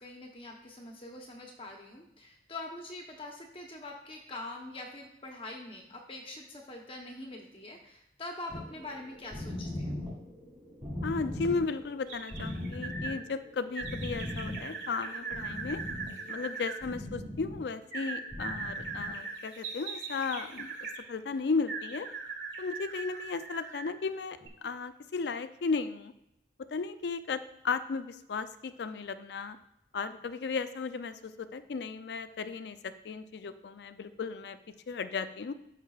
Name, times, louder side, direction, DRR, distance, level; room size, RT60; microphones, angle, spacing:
voice 1, 0.0-10.0, left 2 dB, 30° left, 1 dB, 0.9 m, -44 dB
sound 1, 8.5-19.2, left 1 dB, 20° right, 3.0 m, -40 dB
voice 2, 11.0-15.8 16.3-20.7 21.1-22.1 22.6-26.1 26.7-29.6 29.9-34.6 34.9-35.5, left 4 dB, 70° left, 11 dB, 0.4 m, -35 dB
sound 2, 12.1-13.2 13.7-16.8 17.9-21.0 21.7-23.9 24.4-24.5, right 4 dB, 80° right, 1.6 m, -40 dB
12.5 x 5.8 x 2.4 m, 0.83 s
head